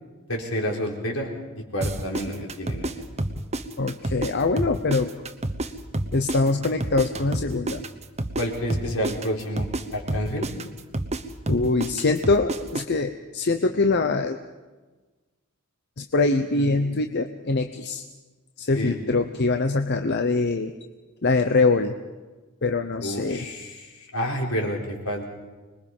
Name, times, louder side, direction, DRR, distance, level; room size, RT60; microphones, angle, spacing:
voice 1, 0.3-1.3 1.7-2.9 8.4-10.5 16.5-16.7 18.7-19.0 23.0-25.3, equal, 75° left, 0 dB, 4.5 m, -29 dB
sound 1, 1.8-4.3 4.6-8.4 8.7-12.8, right 1 dB, 30° right, 1.0 m, -29 dB
voice 2, 3.8-5.1 6.1-7.8 11.5-14.4 16.0-18.0 18.6-20.7 21.2-22.0 22.6-23.5, left 3 dB, 55° left, 7 dB, 0.8 m, -23 dB
25.5 x 21.5 x 5.5 m, 1.3 s
head